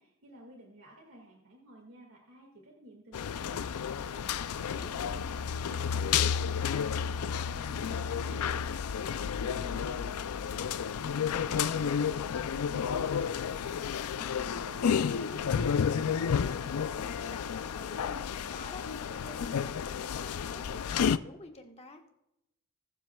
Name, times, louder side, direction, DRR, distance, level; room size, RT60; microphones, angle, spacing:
voice 1, 0.0-8.6 9.0-13.4, right 1 dB, 65° right, -1 dB, 2.0 m, -53 dB
sound 1, 3.1-21.2, left 7 dB, 85° left, 0.4 m, -31 dB
voice 2, 4.5-4.9 14.2-22.0, left 2 dB, 30° left, 4 dB, 1.3 m, -50 dB
20.5 x 7.7 x 2.3 m, 0.84 s
head